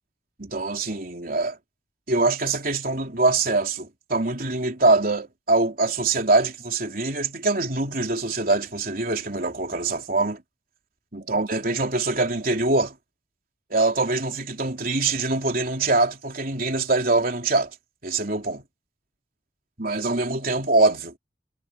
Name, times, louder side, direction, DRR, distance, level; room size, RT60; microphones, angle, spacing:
voice 1, 0.4-1.6 2.1-10.4 11.1-13.0 13.7-17.7 18.0-18.6 19.8-21.1, right 3 dB, 50° right, 3.7 m, -23 dB
head